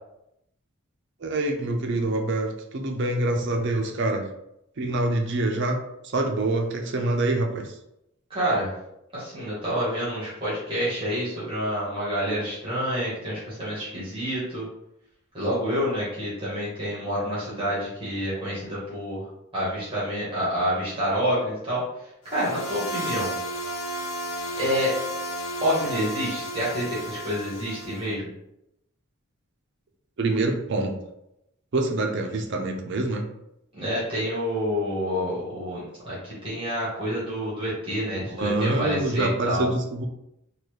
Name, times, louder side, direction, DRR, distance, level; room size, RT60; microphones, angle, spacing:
voice 1, 1.2-4.3 4.8-5.8 6.1-7.7 30.2-31.0 31.7-33.3 38.2-40.1, right 2 dB, 50° right, 3 dB, 0.5 m, -25 dB
voice 2, 8.3-8.7 9.1-14.6 15.3-19.2 19.5-21.8 22.3-23.3 24.6-24.9 25.6-28.3 33.7-39.7, equal, 25° right, -9 dB, 1.3 m, -28 dB
sound 1, 22.3-28.1, equal, 70° left, 0.6 m, -33 dB
4.0 x 2.3 x 3.1 m, 0.84 s
head